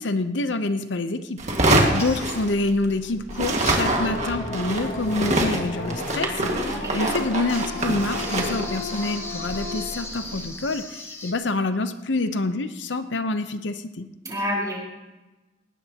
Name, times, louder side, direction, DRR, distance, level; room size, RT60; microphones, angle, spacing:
voice 1, 0.0-1.4 1.9-14.1, left 2 dB, 75° left, 9 dB, 0.8 m, -27 dB
sound 1, 1.4-3.0 3.3-10.5, right 1 dB, 40° right, 1.9 m, -25 dB
sound 2, 2.0-2.7 7.5-11.3, left 2 dB, 15° left, 1.3 m, -38 dB
sound 3, 3.8-10.0, left 2 dB, 40° left, 2.4 m, -34 dB
voice 2, 6.7-7.1 14.2-14.8, left 1 dB, 20° right, -3 dB, 4.8 m, -29 dB
19.5 x 16.5 x 2.9 m, 1.1 s
head